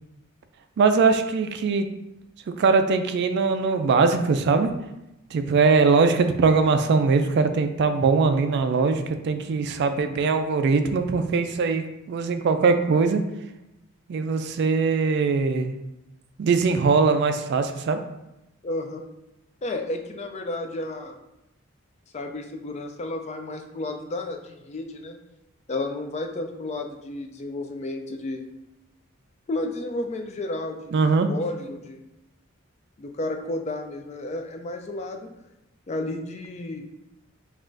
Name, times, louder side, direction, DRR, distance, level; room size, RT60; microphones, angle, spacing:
voice 1, 0.8-1.9 2.6-4.7 5.3-11.8 12.1-13.2 14.1-15.7 16.4-18.0 30.9-31.3, right 4 dB, 55° right, 8 dB, 0.3 m, -21 dB
voice 2, 18.6-19.0 19.6-21.2 22.1-25.2 25.7-28.4 29.5-31.0 31.3-32.0 33.0-35.3 35.9-36.8, left 2 dB, 30° left, 4 dB, 0.3 m, -32 dB
5.6 x 2.4 x 2.5 m, 0.90 s
head